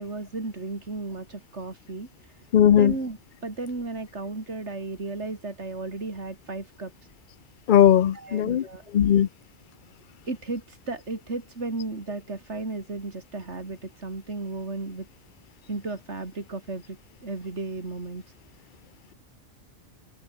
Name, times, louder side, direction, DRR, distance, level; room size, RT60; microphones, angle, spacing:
voice 1, 0.0-2.1 2.7-6.9 8.1-8.9 10.3-15.1 15.7-18.2, right 3 dB, 80° right, 3.8 m, -34 dB
voice 2, 2.5-2.9 7.7-8.6 8.9-9.3, left 10 dB, 50° left, 0.7 m, -18 dB
omnidirectional pair, 1.2 m